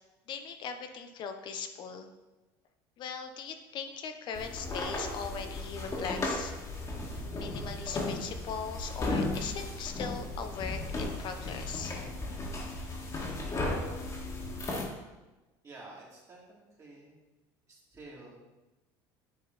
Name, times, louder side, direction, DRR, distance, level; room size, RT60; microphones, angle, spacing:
voice 1, 0.3-2.1 3.0-6.5 7.3-11.9, left 6 dB, 50° left, 7 dB, 0.6 m, -39 dB
sound 1, 4.3-14.8, left 2 dB, 30° left, 1.7 m, -35 dB
voice 2, 15.6-17.4 17.7-18.4, right 2 dB, 30° right, -5 dB, 2.3 m, -51 dB
9.5 x 3.9 x 3.9 m, 1.1 s
supercardioid pair, 105°, 10 cm